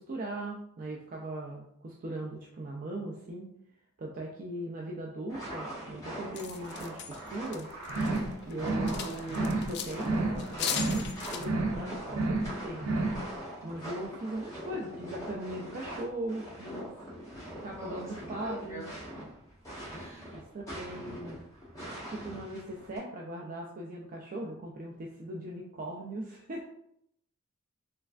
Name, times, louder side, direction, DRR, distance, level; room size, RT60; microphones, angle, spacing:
voice 1, 0.0-3.5 4.0-7.7 8.5-12.9 13.6-16.9 17.6-18.8 20.3-21.4 22.1-26.7, right 1 dB, 40° right, -1 dB, 0.4 m, -39 dB
sound 1, 5.3-23.0, right 1 dB, 15° left, 1.1 m, -42 dB
sound 2, 6.4-8.2 8.5-10.1 10.4-11.4, left 8 dB, 55° left, 0.3 m, -37 dB
sound 3, 7.9-8.3 8.6-9.0 9.3-9.7 10.0-10.4 10.7-11.1 11.4-11.8 12.1-12.5 12.8-13.2, right 2 dB, 90° right, 0.6 m, -30 dB
voice 2, 18.3-19.0 19.9-20.3, equal, 15° right, -7 dB, 1.3 m, -43 dB
3.3 x 3.2 x 2.4 m, 0.74 s
head